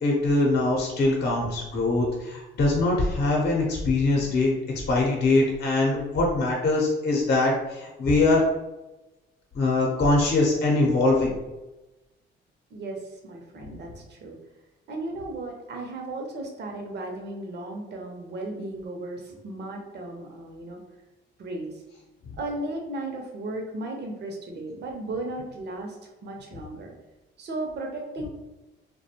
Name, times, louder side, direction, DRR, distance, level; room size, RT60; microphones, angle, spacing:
voice 1, 0.0-4.5 4.9-8.4 9.5-11.3, left 2 dB, 55° left, -2 dB, 0.7 m, -22 dB
voice 2, 12.7-14.4 14.9-20.8 21.4-21.8 22.4-26.9 27.4-28.3, right 2 dB, 60° right, 2 dB, 0.6 m, -35 dB
2.4 x 2.1 x 2.8 m, 1.0 s
cardioid pair, 90°, 20 cm